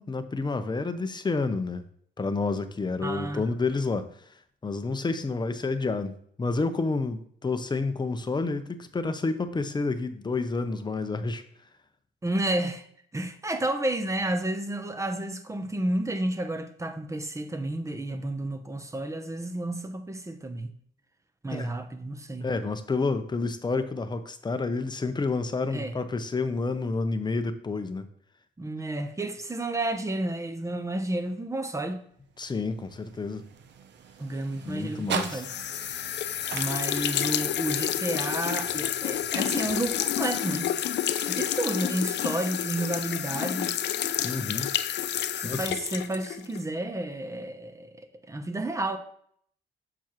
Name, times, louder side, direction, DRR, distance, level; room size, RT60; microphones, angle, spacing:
voice 1, 0.0-1.8 2.2-4.1 4.6-11.4 21.5-21.7 22.4-28.1 32.4-33.4 34.6-35.4 44.2-44.7 45.4-45.6, left 3 dB, 20° left, 0.7 m, -29 dB
voice 2, 3.0-3.5 12.2-12.9 13.1-20.7 21.4-22.5 25.7-25.9 28.6-32.0 34.2-35.5 36.5-40.8 41.2-43.8 45.4-49.0, right 1 dB, 15° right, 0.8 m, -31 dB
sound 1, 32.1-40.4, right 7 dB, 60° right, 0.7 m, -41 dB
sound 2, 35.2-46.6, left 10 dB, 60° left, 0.5 m, -29 dB
7.0 x 5.9 x 3.1 m
cardioid pair, 90°, 20 cm